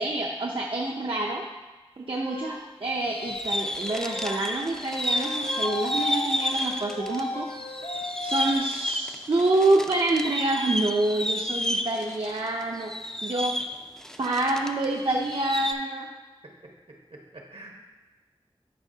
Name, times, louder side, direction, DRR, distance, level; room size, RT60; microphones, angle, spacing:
voice 1, 0.0-1.4 2.0-7.4 8.2-12.9 13.2-13.6 14.2-16.1, right 2 dB, 60° right, -2 dB, 0.6 m, -27 dB
sound 1, 2.1-2.5 3.0-3.5 3.9-4.4 4.9-8.5, left 3 dB, 55° left, 1.0 m, -35 dB
sound 2, 3.1-7.2 7.5-14.9 15.1-15.7, equal, 5° left, 0.4 m, -31 dB
voice 2, 16.4-17.7, right 2 dB, 75° right, 0 dB, 1.2 m, -47 dB
10.5 x 4.6 x 2.8 m, 1.2 s
wide cardioid pair, 50°, 10 cm